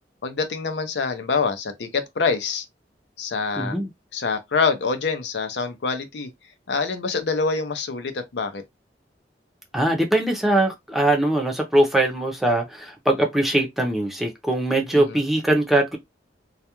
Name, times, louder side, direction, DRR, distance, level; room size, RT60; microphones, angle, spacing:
voice 1, 0.2-2.6 3.2-3.8 4.1-6.3 6.7-8.6 14.9-15.2, left 4 dB, 75° left, 0.5 m, -25 dB
voice 2, 3.6-3.9 9.7-16.0, right 1 dB, ahead, 0.5 m, -21 dB
2.3 x 2.2 x 2.9 m
head